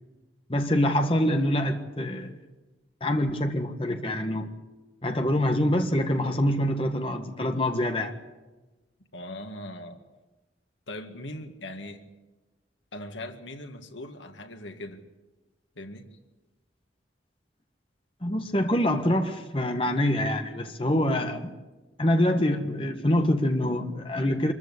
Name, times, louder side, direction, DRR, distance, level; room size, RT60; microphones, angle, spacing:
voice 1, 0.5-2.4 3.0-4.5 5.0-8.1 18.2-21.5 22.0-24.5, left 1 dB, 30° left, 1.6 m, -25 dB
voice 2, 9.1-10.0 10.9-12.0 12.9-15.0 15.8-16.1, left 1 dB, 85° left, 2.0 m, -40 dB
25.5 x 15.0 x 9.8 m
head